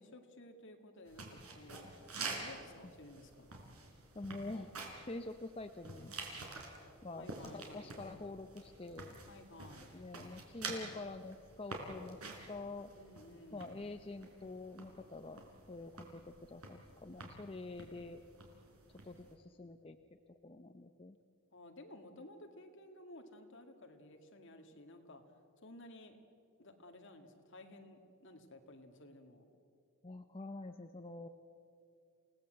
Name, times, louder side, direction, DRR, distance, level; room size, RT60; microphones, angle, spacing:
voice 1, 0.0-1.9 2.3-3.5 7.1-7.9 9.3-10.0 13.0-13.8 21.5-25.2 25.6-26.2 26.6-29.4, left 1 dB, 55° left, 4 dB, 2.2 m, -55 dB
sound 1, 1.1-19.3, right 3 dB, 80° right, 4.1 m, -49 dB
voice 2, 4.1-4.8 5.0-6.2 7.0-9.2 9.9-12.2 12.5-12.9 13.5-18.2 19.0-21.2 30.0-31.3, left 2 dB, 25° left, 7 dB, 0.6 m, -47 dB
28.0 x 17.5 x 7.8 m, 2.5 s
head